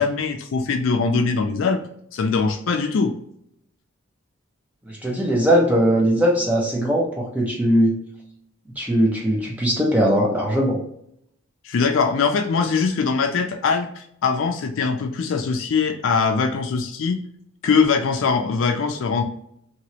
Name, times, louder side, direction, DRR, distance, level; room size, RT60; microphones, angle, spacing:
voice 1, 0.0-1.8 2.1-3.1 11.6-17.2 17.6-19.2, left 5 dB, 65° left, 5 dB, 0.4 m, -22 dB
voice 2, 5.0-8.0 8.8-10.8, equal, 5° right, -2 dB, 0.5 m, -19 dB
2.9 x 2.9 x 2.9 m, 0.72 s
head